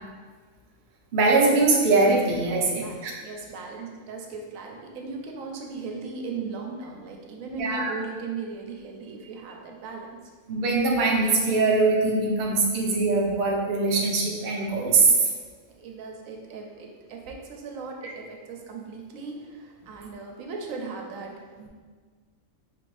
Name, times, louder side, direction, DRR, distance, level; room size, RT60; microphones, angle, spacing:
voice 1, 1.1-3.1 7.6-7.9 10.5-15.1 18.0-18.1, right 3 dB, 50° right, -2 dB, 0.6 m, -22 dB
voice 2, 3.2-10.1 15.7-21.7, right 4 dB, 85° right, 1 dB, 1.0 m, -37 dB
4.7 x 2.5 x 3.2 m, 1.5 s
omnidirectional pair, 1.4 m